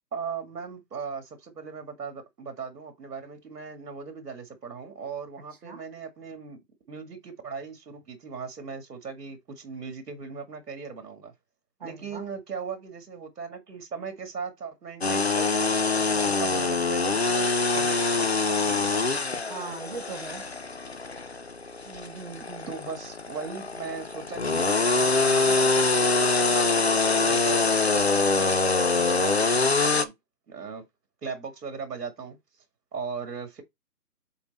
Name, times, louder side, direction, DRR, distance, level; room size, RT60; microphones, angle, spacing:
voice 1, 0.1-6.6 6.9-11.3 11.8-17.5 17.7-19.2 22.7-30.1 30.5-30.8 31.2-32.4 32.9-33.6, right 5 dB, 70° right, 2.2 m, -38 dB
voice 2, 11.8-12.2 19.5-20.4 21.8-22.8, right 5 dB, 30° right, 1.0 m, -40 dB
sound 1, 15.0-30.0, left 3 dB, 45° left, 0.4 m, -24 dB
7.1 x 3.9 x 4.0 m
hypercardioid pair, 165°, 49 cm